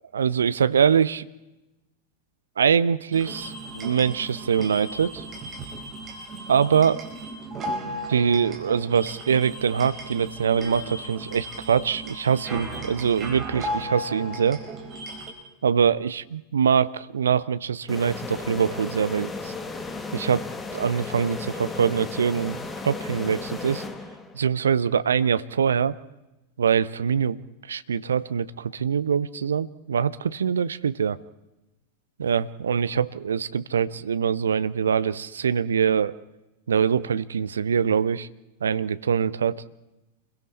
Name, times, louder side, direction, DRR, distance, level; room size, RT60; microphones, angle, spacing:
voice 1, 0.1-1.3 2.6-5.2 6.5-7.0 8.1-14.6 15.6-19.5 20.1-20.4 20.7-22.6 22.8-23.8 24.3-25.9 26.6-31.2 32.2-36.2 36.7-38.3 38.6-39.6, right 7 dB, 70° right, 15 dB, 0.7 m, -23 dB
sound 1, 3.1-15.3, right 1 dB, 25° right, 4.9 m, -36 dB
sound 2, 17.9-24.5, left 3 dB, 15° left, 1.7 m, -35 dB
28.5 x 22.0 x 4.3 m, 0.99 s
figure-of-eight pair, 90°, 0 cm